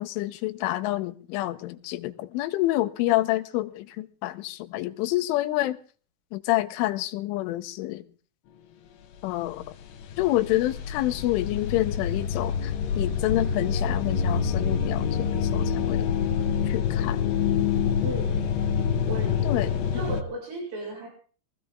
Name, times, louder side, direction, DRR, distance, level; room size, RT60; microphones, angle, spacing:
voice 1, 0.0-5.8 6.3-8.0 9.2-9.7 10.2-16.1 16.7-17.2 19.4-19.7, left 16 dB, 85° left, 3.4 m, -28 dB
sound 1, 9.2-9.3 9.5-20.2, left 7 dB, 65° left, 3.0 m, -26 dB
voice 2, 18.0-18.5 19.1-21.1, right 2 dB, 80° right, 8.1 m, -36 dB
22.5 x 16.5 x 3.8 m
omnidirectional pair, 5.6 m